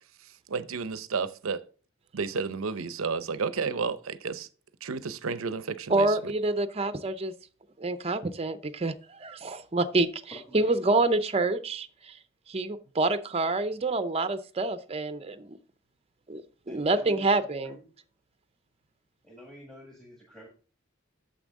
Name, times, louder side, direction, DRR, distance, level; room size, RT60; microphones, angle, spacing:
voice 1, 0.5-1.6 2.1-4.5 4.8-6.1, right 5 dB, 90° right, 0.6 m, -31 dB
voice 2, 5.9-7.3 7.8-10.1 10.5-12.2 12.5-15.6 16.3-16.4 16.7-17.8, right 2 dB, 30° right, 0.6 m, -27 dB
voice 3, 10.3-10.8 16.7-17.9 19.2-20.5, equal, 5° left, 1.6 m, -48 dB
9.1 x 6.9 x 3.6 m
head